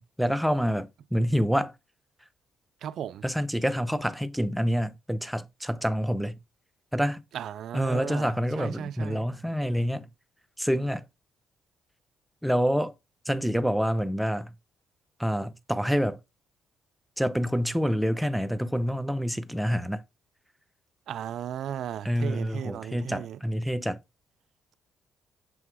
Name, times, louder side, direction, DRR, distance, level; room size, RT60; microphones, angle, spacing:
voice 1, 0.0-1.7 3.2-6.4 6.9-7.2 7.7-10.1 10.6-11.0 12.4-12.9 13.3-14.5 15.2-16.2 17.2-20.0 22.0-24.0, equal, ahead, 0.7 m, -27 dB
voice 2, 2.8-3.2 7.3-9.3 21.1-23.4, right 9 dB, 70° right, 0.5 m, -36 dB
7.7 x 3.1 x 4.8 m
cardioid pair, 90°, 0 cm